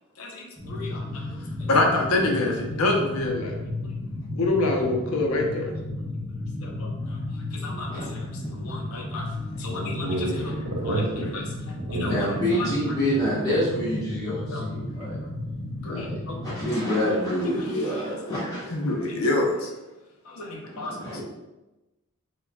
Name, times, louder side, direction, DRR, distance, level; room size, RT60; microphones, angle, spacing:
voice 1, 0.2-3.9 4.3-5.7 6.6-7.2 7.5-9.3 9.6-10.3 10.8-11.0 11.3-11.4 11.9-12.7 13.8-13.9 14.2-14.7 15.8-17.0 17.8-18.4 18.7-19.7 20.2-21.2, left 2 dB, 80° left, 1 dB, 0.6 m, -28 dB
sound 1, 0.6-16.6, left 1 dB, 10° right, 0.6 m, -33 dB
voice 2, 9.7-12.3, right 1 dB, 90° right, 0 dB, 0.8 m, -30 dB
voice 3, 12.0-15.2 15.9-16.1 16.4-18.8 20.7-21.2, equal, 15° left, -8 dB, 1.1 m, -27 dB
4.5 x 2.2 x 2.2 m, 1.0 s
head